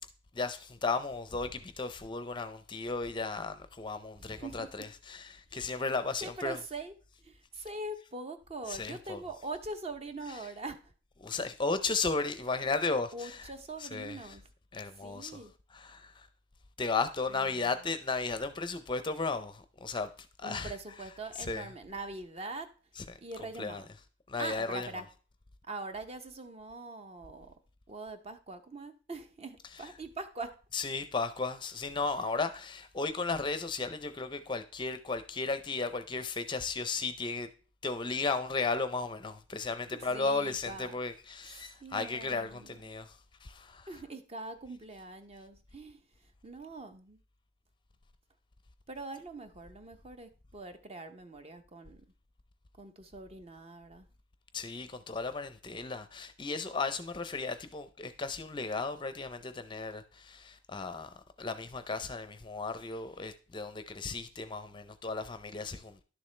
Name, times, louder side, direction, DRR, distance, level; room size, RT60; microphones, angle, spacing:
voice 1, 0.3-6.6 8.7-9.2 11.2-13.5 13.8-14.3 14.7-15.4 15.7-16.3 16.8-20.1 20.4-20.7 21.4-21.7 23.0-23.2 23.6-23.8 24.3-24.9 30.7-37.5 37.8-43.9 54.5-66.0, left 4 dB, 25° left, 0.5 m, -35 dB
voice 2, 4.2-4.9 5.5-5.8 6.2-10.9 13.1-14.5 15.0-15.5 17.3-17.7 20.4-22.7 23.2-23.9 24.4-25.1 25.7-27.6 27.9-30.6 39.9-40.9 41.5-42.9 43.9-46.0 46.4-47.2 48.9-52.1 52.8-54.1, right 2 dB, 30° right, 0.7 m, -43 dB
11.0 x 6.9 x 3.2 m
head